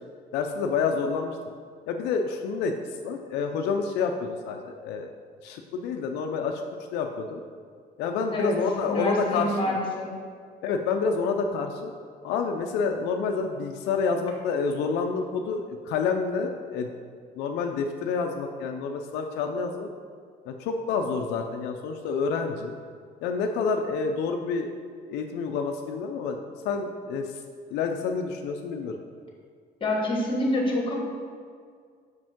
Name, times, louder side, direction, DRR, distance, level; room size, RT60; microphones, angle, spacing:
voice 1, 0.3-1.4 1.9-5.1 5.4-6.6 6.9-7.4 8.0-9.8 10.6-11.9 12.2-16.9 17.4-19.9 20.5-22.7 23.2-24.7 25.0-26.4 26.6-27.3 27.7-29.0, left 5 dB, 85° left, 4 dB, 0.4 m, -28 dB
voice 2, 8.8-10.1 29.8-30.9, left 1 dB, 30° left, -1 dB, 1.4 m, -27 dB
6.0 x 5.1 x 3.6 m, 2.1 s
cardioid pair, 110°, 17 cm